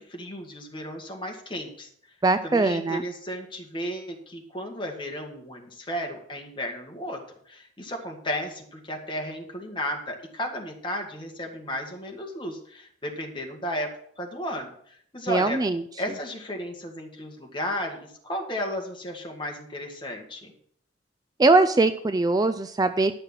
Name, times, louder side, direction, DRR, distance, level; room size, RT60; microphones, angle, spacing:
voice 1, 0.0-1.9 2.4-7.2 7.5-13.9 14.2-15.6 16.0-20.5, equal, 25° left, 2 dB, 1.9 m, -34 dB
voice 2, 2.2-3.0 15.3-15.8 21.4-23.1, right 3 dB, 20° right, 10 dB, 0.4 m, -21 dB
11.5 x 6.6 x 6.2 m, 0.63 s
head